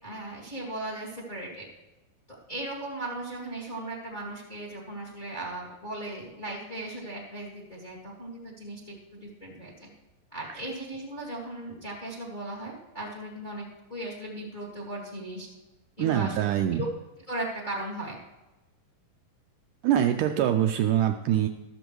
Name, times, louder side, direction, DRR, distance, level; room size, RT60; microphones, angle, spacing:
voice 1, 0.0-1.6 2.5-9.9 10.3-13.6 13.9-15.5 16.0-16.4 16.7-16.9 17.3-18.2, right 1 dB, 20° left, -2 dB, 1.5 m, -37 dB
voice 2, 16.0-16.8 19.8-21.5, right 11 dB, 80° right, 6 dB, 1.9 m, -24 dB
13.5 x 13.5 x 3.1 m, 1.1 s
omnidirectional pair, 4.1 m